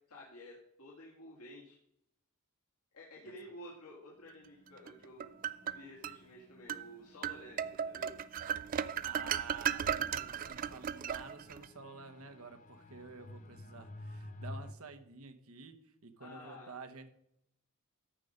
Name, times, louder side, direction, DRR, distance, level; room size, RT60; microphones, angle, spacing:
voice 1, 0.1-1.7 2.9-5.4 5.6-8.1 16.2-16.7, left 1 dB, 85° left, -4 dB, 1.9 m, -52 dB
sound 1, 4.2-14.7, left 1 dB, 35° left, 0.6 m, -53 dB
sound 2, 4.9-6.2 6.7-6.9 7.2-11.7, right 8 dB, 40° right, 0.3 m, -36 dB
voice 2, 9.0-17.1, right 4 dB, 80° right, 8 dB, 1.1 m, -50 dB
14.0 x 5.4 x 5.1 m, 0.75 s
head